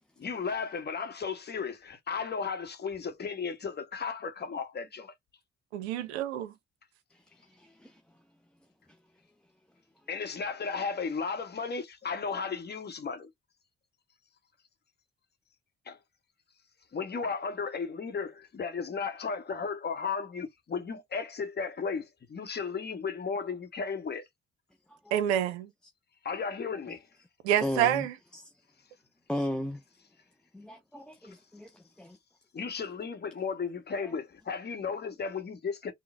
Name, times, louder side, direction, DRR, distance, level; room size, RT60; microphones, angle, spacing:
voice 1, 0.2-5.1 10.1-13.3 15.9-16.0 16.9-24.2 26.2-27.0 32.5-35.9, left 5 dB, 30° left, 0.9 m, -34 dB
voice 2, 5.7-6.5 25.1-25.7 27.4-28.1, right 11 dB, 75° right, 0.5 m, -27 dB
voice 3, 7.1-8.0 8.9-9.0 24.9-25.2 27.6-28.1 28.3-28.4 29.3-29.8 30.5-32.2 34.0-34.1, left 1 dB, 5° left, 0.4 m, -36 dB
3.7 x 2.1 x 2.4 m
figure-of-eight pair, 40°, 33 cm